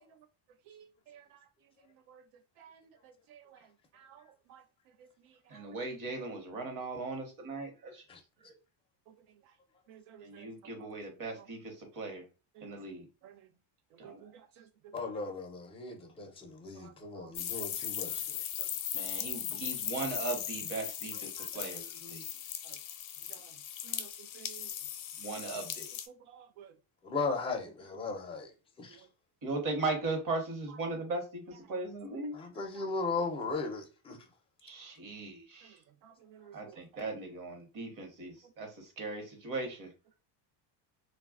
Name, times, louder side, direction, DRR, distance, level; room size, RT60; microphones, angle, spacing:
voice 1, 5.5-8.0 10.2-12.2 12.6-13.0 14.0-14.2 18.9-22.2 25.2-25.9 29.4-32.3 34.6-35.7 36.5-38.7 39.0-39.9, right 3 dB, 40° right, 1.0 m, -38 dB
voice 2, 9.9-10.5 12.6-12.7 13.2-13.3 14.0-14.1 16.8-17.3 23.9-24.1 24.4-24.7 26.4-26.7 36.4-36.7, right 9 dB, 80° right, 0.6 m, -53 dB
voice 3, 14.9-18.4 21.4-21.5 27.0-28.5 28.8-29.0 32.3-34.2, left 4 dB, 15° left, 0.4 m, -37 dB
sound 1, 17.3-26.1, left 10 dB, 75° left, 0.6 m, -38 dB
3.1 x 2.3 x 2.3 m
cardioid pair, 140°, 49 cm